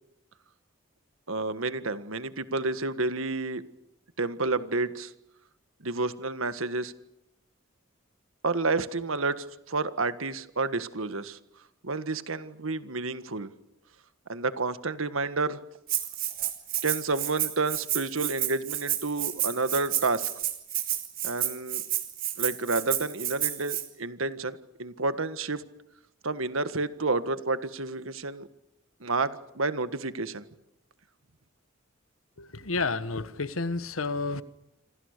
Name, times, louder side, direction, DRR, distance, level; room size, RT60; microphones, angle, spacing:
voice 1, 1.3-3.6 4.2-5.1 5.8-6.9 8.4-11.4 11.8-13.5 14.3-15.6 16.4-16.5 16.8-20.3 21.2-21.8 22.4-25.7 26.2-28.5 29.0-30.4, right 3 dB, 80° right, 1.6 m, -30 dB
Rattle (instrument), 15.9-23.8, right 12 dB, 45° right, 3.8 m, -30 dB
voice 2, 32.4-34.4, left 3 dB, 85° left, 1.4 m, -30 dB
28.0 x 25.5 x 6.7 m
head